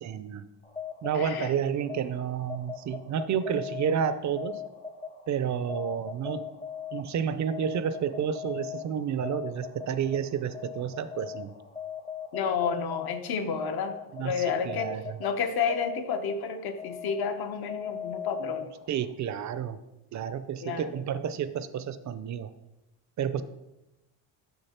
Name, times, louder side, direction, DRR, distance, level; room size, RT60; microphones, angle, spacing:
voice 1, 0.0-0.4 1.0-4.6 5.3-6.4 6.9-11.5 14.1-15.2 18.4-18.5 18.9-19.8 20.1-22.5 23.2-23.4, right 8 dB, 45° right, 13 dB, 0.5 m, -30 dB
sound 1, 0.6-19.1, left 7 dB, 15° left, 0.6 m, -40 dB
voice 2, 1.1-1.5 3.4-3.5 12.3-18.7 20.6-21.0, left 6 dB, 60° left, 8 dB, 0.9 m, -31 dB
6.6 x 6.6 x 4.3 m, 0.96 s
cardioid pair, 140°, 42 cm